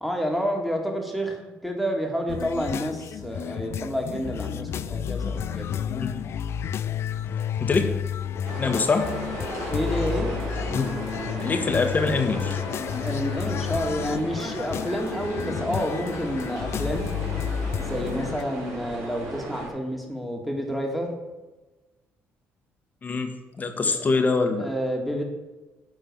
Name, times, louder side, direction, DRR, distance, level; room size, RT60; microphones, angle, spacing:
voice 1, 0.0-5.8 9.7-10.3 13.0-17.1 17.8-21.1 23.6-24.0 24.6-25.2, equal, ahead, 1 dB, 1.8 m, -29 dB
sound 1, 2.3-18.4, left 8 dB, 60° left, 0.4 m, -31 dB
sound 2, 8.4-19.7, right 2 dB, 70° right, 3.4 m, -36 dB
voice 2, 8.6-9.1 10.7-10.9 11.4-12.6 23.0-23.3 23.6-24.7, left 4 dB, 35° left, 6 dB, 1.2 m, -24 dB
10.0 x 3.9 x 6.7 m, 1.2 s
cardioid pair, 85°, 5 cm